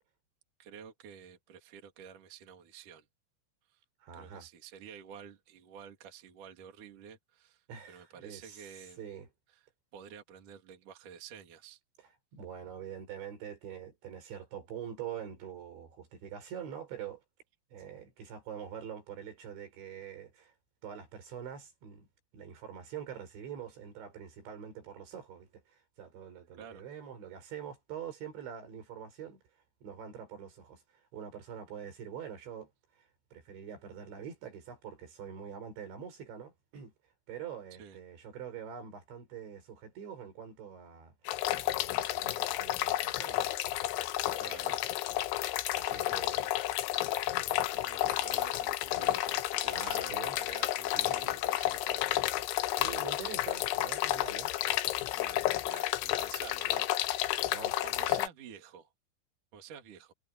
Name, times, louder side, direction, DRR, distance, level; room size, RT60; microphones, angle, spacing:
voice 1, 0.6-3.1 3.7-3.8 4.1-9.0 9.5-9.6 9.9-11.8 26.6-26.8 37.8-38.0 44.4-44.8 45.8-46.5 47.6-52.3 55.1-57.5 57.8-58.9 59.5-60.1, right 7 dB, 50° right, 3.7 m, -50 dB
voice 2, 4.0-4.5 7.7-8.7 9.0-9.3 12.3-17.2 17.7-20.5 20.8-22.1 22.3-29.4 29.8-30.8 31.1-32.7 33.3-36.9 37.3-41.1 41.6-43.5 44.0-44.8 45.7-46.4 49.7-50.4 51.1-51.2 52.8-54.5 57.5-58.2, right 8 dB, 70° right, 7.3 m, -45 dB
sound 1, 41.3-58.3, left 15 dB, 85° left, 3.3 m, -31 dB
omnidirectional pair, 5.4 m